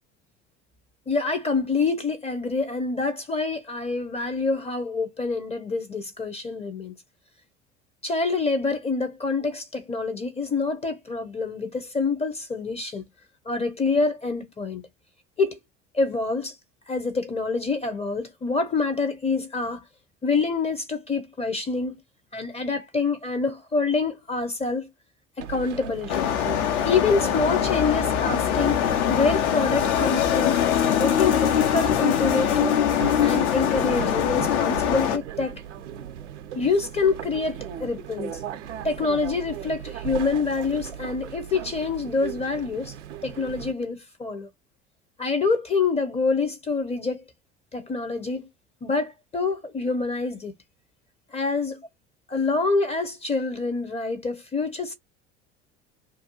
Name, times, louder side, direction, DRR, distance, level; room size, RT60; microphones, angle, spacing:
voice 1, 1.1-6.9 8.0-13.0 13.5-14.8 15.4-15.6 15.9-16.5 16.9-19.8 20.2-22.0 22.3-24.9 25.4-26.3 26.8-28.8 29.1-32.7 33.2-35.6 36.5-38.4 38.8-42.9 43.2-44.5 45.2-47.2 47.7-48.5 48.8-50.5 51.3-51.9 52.3-54.9, left 4 dB, 20° left, 0.5 m, -26 dB
sound 1, 25.4-43.7, right 9 dB, 75° right, 0.6 m, -38 dB
sound 2, 26.1-35.2, left 9 dB, 65° left, 0.6 m, -23 dB
2.4 x 2.2 x 2.8 m
figure-of-eight pair, 70°, 36 cm